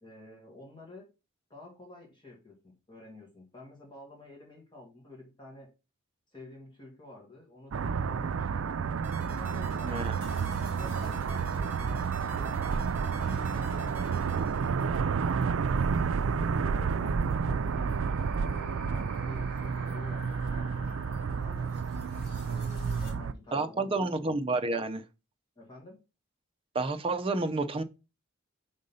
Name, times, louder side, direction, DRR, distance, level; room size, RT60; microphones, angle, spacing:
voice 1, 0.0-1.1 1.5-5.7 6.3-9.0 9.2-10.1 10.7-14.5 14.8-16.0 16.5-17.9 18.3-21.7 22.5-24.1 25.6-26.0, left 2 dB, 25° left, 1.9 m, -50 dB
sound 1, 7.7-23.3, right 6 dB, 75° right, 0.4 m, -30 dB
sound 2, 9.0-15.3, right 1 dB, 10° right, 1.7 m, -49 dB
voice 2, 9.8-10.1 23.5-25.0 26.7-27.8, right 3 dB, 25° right, 0.6 m, -30 dB
sound 3, 10.2-23.1, right 1 dB, 50° left, 2.5 m, -45 dB
5.3 x 3.7 x 5.5 m
head